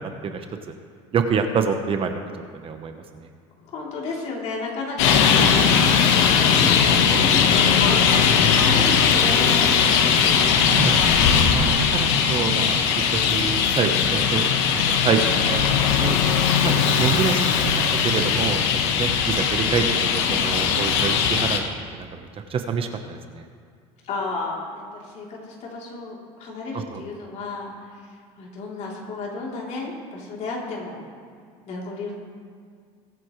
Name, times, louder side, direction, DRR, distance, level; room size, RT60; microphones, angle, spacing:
voice 1, 1.1-3.3 5.1-5.2 10.8-12.8 13.1-14.5 14.7-15.6 15.9-16.2 16.6-17.7 18.0-21.6 21.9-22.2 22.5-23.4 26.7-27.0, right 6 dB, 40° right, 6 dB, 1.1 m, -27 dB
voice 2, 3.6-10.4 16.7-17.1 24.0-31.0 31.7-32.1, left 3 dB, 50° left, -3 dB, 3.5 m, -33 dB
Traffic noise roadway noise, 5.0-21.6, left 7 dB, 80° left, 1.3 m, -19 dB
22.0 x 8.4 x 3.3 m, 2.1 s
supercardioid pair, 105°, 15 cm